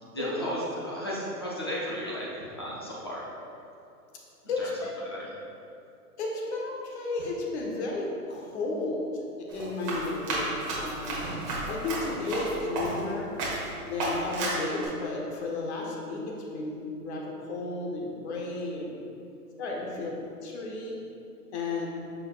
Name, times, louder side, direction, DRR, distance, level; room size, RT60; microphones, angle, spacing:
voice 1, 0.0-3.2 4.4-4.7 5.0-5.3, equal, 20° left, -6 dB, 0.4 m, -34 dB
voice 2, 4.5-4.9 6.2-9.1 9.4-11.2 11.7-13.3 13.8-19.0 19.6-21.0 21.5-22.0, left 2 dB, 45° left, -2 dB, 1.2 m, -33 dB
sound 1, 7.2-7.7 11.2-12.0, right 2 dB, 40° right, 1.0 m, -42 dB
Run, 9.5-13.1 13.4-13.7 14.0-14.9, right 2 dB, 25° right, 1.4 m, -32 dB
8.1 x 6.2 x 2.3 m, 2.6 s
hypercardioid pair, 150°, 46 cm